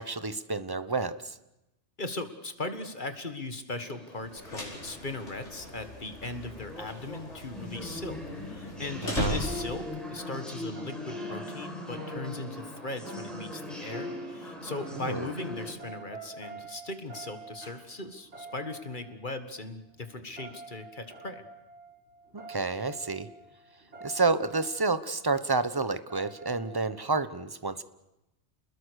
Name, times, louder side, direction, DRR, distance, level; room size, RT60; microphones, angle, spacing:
voice 1, 0.0-1.3 9.0-9.4 15.0-15.2 22.5-23.3 24.0-27.8, right 3 dB, 20° right, 13 dB, 1.0 m, -29 dB
voice 2, 2.0-21.5, left 2 dB, 45° left, 9 dB, 1.9 m, -38 dB
sound 1, 3.8-15.7, left 1 dB, ahead, 5.8 m, -42 dB
sound 2, 4.2-10.0, left 1 dB, 90° left, 5.7 m, -38 dB
sound 3, 8.9-19.5 19.9-25.3 26.0-27.3, right 1 dB, 75° right, 6.1 m, -45 dB
29.0 x 20.5 x 6.5 m, 0.92 s
omnidirectional pair, 1.2 m